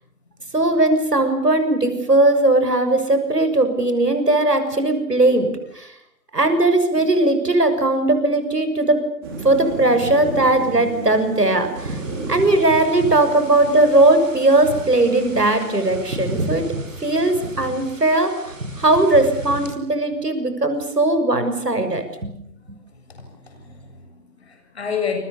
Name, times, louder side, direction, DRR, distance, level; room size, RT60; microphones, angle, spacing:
voice 1, 0.5-5.5 5.8-5.9 6.3-9.1 9.4-12.0 12.3-16.7 17.0-22.3, right 2 dB, 70° right, 8 dB, 6.7 m, -18 dB
sound 1, 9.2-16.5, right 2 dB, 15° right, 3.9 m, -35 dB
sound 2, 11.8-19.7, right 1 dB, 50° right, 5.8 m, -33 dB
voice 2, 23.1-25.2, left 6 dB, 40° left, 5 dB, 7.4 m, -30 dB
29.5 x 23.5 x 7.0 m, 0.76 s
figure-of-eight pair, 160°, 50 cm